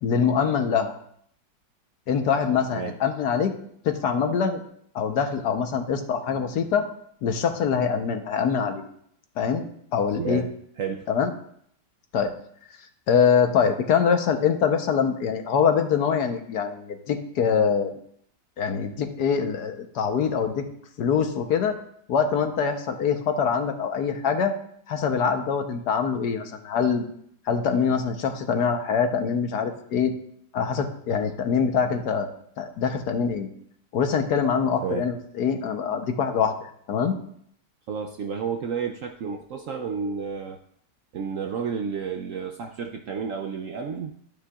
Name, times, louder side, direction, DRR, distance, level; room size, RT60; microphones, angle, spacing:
voice 1, 0.0-0.9 2.1-3.5 3.8-4.6 4.9-6.9 7.2-8.8 9.4-9.6 9.9-10.4 11.1-11.3 12.1-12.3 13.1-17.9 18.6-20.7 21.0-21.7 22.1-24.5 24.9-27.1 27.5-30.1 30.5-33.5 33.9-37.2, left 6 dB, 70° left, 6 dB, 1.4 m, -24 dB
voice 2, 10.2-10.5 10.8-11.1 34.8-35.1 37.9-40.6 41.1-44.2, right 6 dB, 70° right, 4 dB, 0.8 m, -31 dB
12.5 x 8.7 x 2.4 m, 0.67 s
omnidirectional pair, 1.9 m